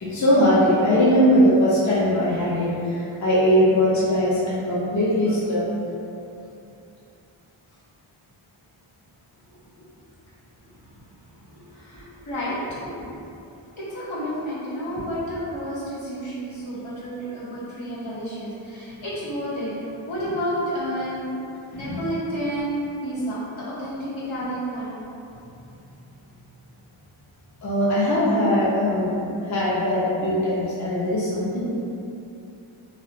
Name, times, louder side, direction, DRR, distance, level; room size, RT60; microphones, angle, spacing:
voice 1, 0.0-5.7 21.7-22.1 27.6-29.2 29.4-31.7, equal, 35° left, -8 dB, 0.6 m, -20 dB
voice 2, 11.5-13.1 13.8-19.7 20.1-21.4 21.7-25.0, equal, 65° left, -10 dB, 1.0 m, -30 dB
2.7 x 2.0 x 2.8 m, 2.7 s
cardioid pair, 45°, 50 cm